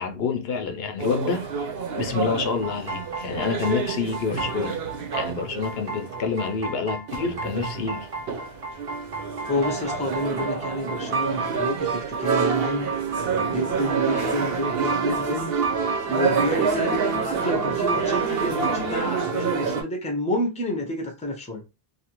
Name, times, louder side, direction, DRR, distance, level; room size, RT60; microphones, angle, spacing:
voice 1, 0.0-1.5 2.0-4.8 5.1-8.1, left 5 dB, 75° left, 0.8 m, -28 dB
sound 1, 1.0-6.6 7.1-19.8, right 5 dB, 75° right, 0.9 m, -28 dB
sound 2, 2.5-19.0, right 4 dB, 40° right, 0.7 m, -33 dB
voice 2, 9.5-12.9 13.5-15.5 16.1-21.6, equal, 10° left, 0.6 m, -29 dB
2.7 x 2.5 x 2.9 m
omnidirectional pair, 1.0 m